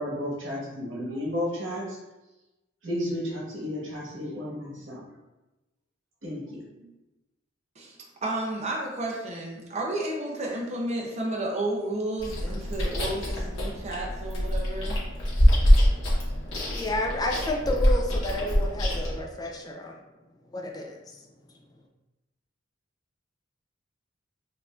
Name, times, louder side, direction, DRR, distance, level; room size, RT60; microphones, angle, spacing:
voice 1, 0.0-2.0 2.8-5.0 6.2-6.9, left 1 dB, 85° right, -4 dB, 1.3 m, -33 dB
voice 2, 7.8-15.0, right 1 dB, 35° right, -1 dB, 0.6 m, -32 dB
Chewing mastication, 12.2-19.2, equal, 70° left, 1.1 m, -24 dB
voice 3, 16.7-19.9 20.5-21.2, left 1 dB, 20° left, 1 dB, 0.4 m, -31 dB
5.3 x 2.6 x 2.4 m, 1.0 s
head